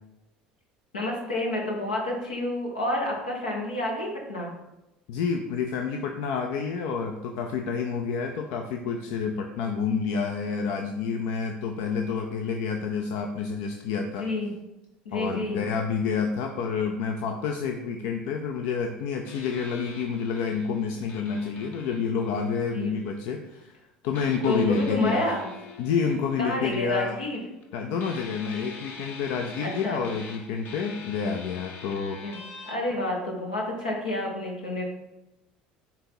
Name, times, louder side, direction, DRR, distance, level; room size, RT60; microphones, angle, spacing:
voice 1, 0.9-4.5 14.2-14.5 15.0-15.6 22.7-22.9 24.4-25.5 26.4-27.4 29.6-30.0 32.2-32.4 32.7-34.8, left 1 dB, 85° left, -1 dB, 1.3 m, -29 dB
voice 2, 5.1-14.3 15.1-23.7 24.0-25.4 25.8-27.2 27.7-32.2, left 5 dB, 65° left, 4 dB, 0.5 m, -29 dB
sound 1, 19.3-23.1 24.1-27.7 28.0-32.7, left 4 dB, 50° left, 1.0 m, -45 dB
7.5 x 2.8 x 4.5 m, 0.99 s
hypercardioid pair, 70°, 4 cm